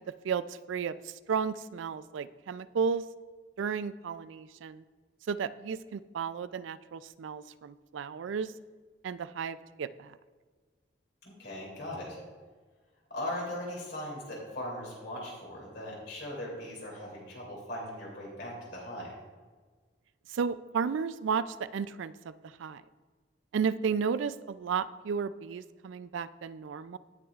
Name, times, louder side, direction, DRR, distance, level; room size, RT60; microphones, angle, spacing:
voice 1, 0.2-3.0 3.6-4.8 5.3-8.5 9.0-10.2 20.3-22.8 23.5-27.0, right 6 dB, 80° right, 15 dB, 0.3 m, -33 dB
voice 2, 11.2-12.2 13.1-19.1, left 1 dB, 60° left, -4 dB, 2.9 m, -39 dB
17.0 x 6.1 x 2.4 m, 1.4 s
head